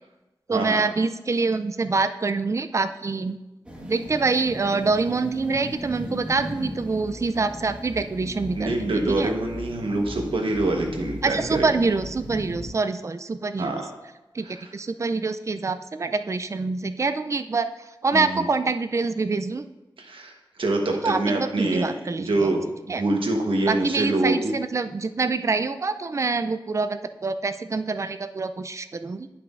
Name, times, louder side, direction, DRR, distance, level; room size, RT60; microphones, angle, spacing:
voice 1, 0.5-3.4 3.9-9.3 11.2-13.8 14.3-14.5 14.7-17.7 18.0-19.6 21.0-22.5 22.9-23.0 23.7-29.3, right 4 dB, 35° right, 10 dB, 0.3 m, -25 dB
sound 1, 3.6-12.7, equal, 10° right, 1.5 m, -37 dB
voice 2, 8.5-11.7 13.6-13.9 14.5-14.7 18.1-18.4 20.0-20.3 20.6-21.9 22.2-24.5, right 2 dB, 80° right, 2 dB, 1.1 m, -25 dB
10.0 x 5.8 x 2.5 m, 1.0 s
wide cardioid pair, 70°, 9 cm